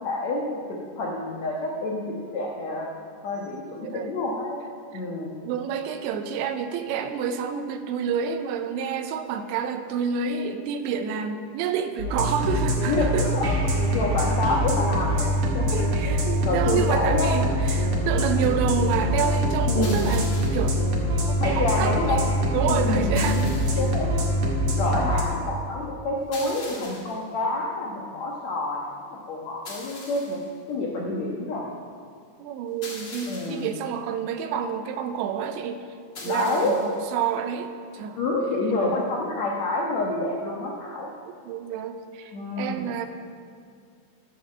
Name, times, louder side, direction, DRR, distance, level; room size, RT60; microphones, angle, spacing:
voice 1, 0.0-2.9 3.2-4.6 4.9-5.3 12.9-13.5 13.9-15.7 16.0-16.2 16.4-17.3 19.7-20.1 21.4-22.2 22.7-23.4 23.8-28.9 29.3-30.4 30.7-31.7 33.3-33.7 36.2-36.8 38.1-41.1 42.3-42.8, left 2 dB, 75° left, -2 dB, 1.6 m, -28 dB
voice 2, 5.4-13.3 15.7-20.8 21.3-23.8 32.4-35.8 36.3-38.2 41.4-43.1, right 7 dB, 80° right, 7 dB, 3.0 m, -29 dB
sound 1, 12.0-25.2, equal, 50° right, 1.7 m, -24 dB
sound 2, 19.8-20.7 23.1-24.0 26.3-27.2 29.6-30.5 32.8-33.7 36.1-37.0, left 2 dB, 40° left, 1.5 m, -41 dB
12.0 x 8.2 x 7.4 m, 2.3 s
omnidirectional pair, 5.2 m